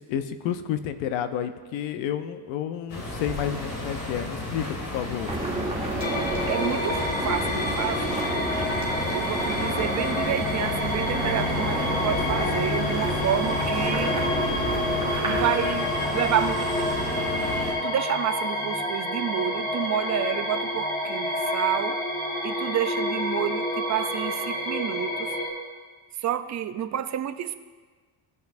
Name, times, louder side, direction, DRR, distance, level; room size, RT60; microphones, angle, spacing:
voice 1, 0.0-5.3, left 9 dB, 85° left, 10 dB, 0.8 m, -30 dB
sound 1, 2.9-17.7, left 2 dB, 45° left, 2.2 m, -32 dB
sound 2, 5.3-15.5, right 2 dB, 10° right, 1.7 m, -31 dB
sound 3, 6.0-25.5, left 1 dB, 20° left, 1.4 m, -29 dB
voice 2, 6.5-8.2 9.1-14.2 15.2-16.9 17.8-22.0 22.4-25.3 26.2-27.5, right 10 dB, 40° right, 11 dB, 0.4 m, -29 dB
16.5 x 5.8 x 2.5 m, 1.4 s
cardioid pair, 120°, 44 cm